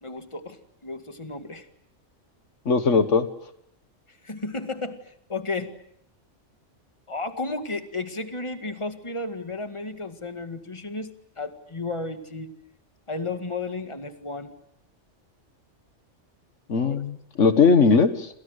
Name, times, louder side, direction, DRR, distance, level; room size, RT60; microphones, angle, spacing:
voice 1, 0.0-1.7 4.1-5.7 7.1-11.1 11.4-12.5 13.1-14.5 16.7-17.0, left 3 dB, 25° left, 7 dB, 2.1 m, -33 dB
voice 2, 2.6-3.3 16.7-18.3, left 5 dB, 75° left, 10 dB, 1.8 m, -19 dB
29.0 x 26.5 x 6.6 m, 0.72 s
omnidirectional pair, 1.3 m